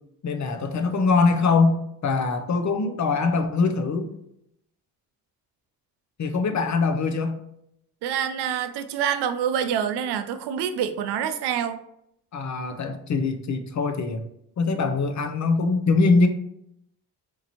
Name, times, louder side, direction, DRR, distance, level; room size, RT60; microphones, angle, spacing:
voice 1, 0.2-1.7 2.0-4.1 6.2-7.4 12.3-14.3 14.6-16.3, left 4 dB, 45° left, 0.6 m, -22 dB
voice 2, 8.0-11.8, right 8 dB, 80° right, 0.5 m, -26 dB
4.5 x 2.5 x 2.9 m
supercardioid pair, 60°, 40 cm